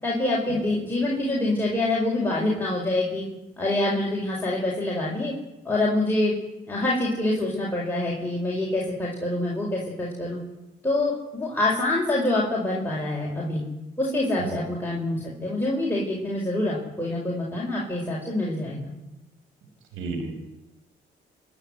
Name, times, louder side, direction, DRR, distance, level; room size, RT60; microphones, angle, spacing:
voice 1, 0.0-3.2 3.6-5.3 5.6-6.3 6.7-10.4 10.8-13.6 14.0-18.9, left 2 dB, 10° left, -5 dB, 5.5 m, -26 dB
voice 2, 14.4-14.7 19.9-20.4, right 3 dB, 90° right, 6 dB, 5.3 m, -31 dB
25.5 x 10.5 x 9.7 m, 0.96 s
cardioid pair, 90°, 20 cm